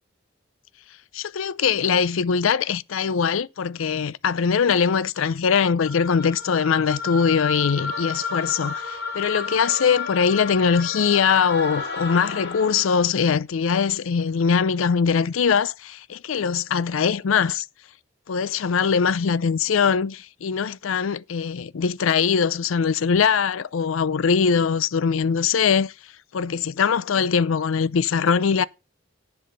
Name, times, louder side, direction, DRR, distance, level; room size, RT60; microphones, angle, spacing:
voice 1, 1.1-17.7 18.3-25.9 26.3-28.6, left 6 dB, 85° left, 0.5 m, -22 dB
sound 1, 5.8-13.1, left 4 dB, 55° left, 3.6 m, -32 dB
10.0 x 5.7 x 6.6 m
head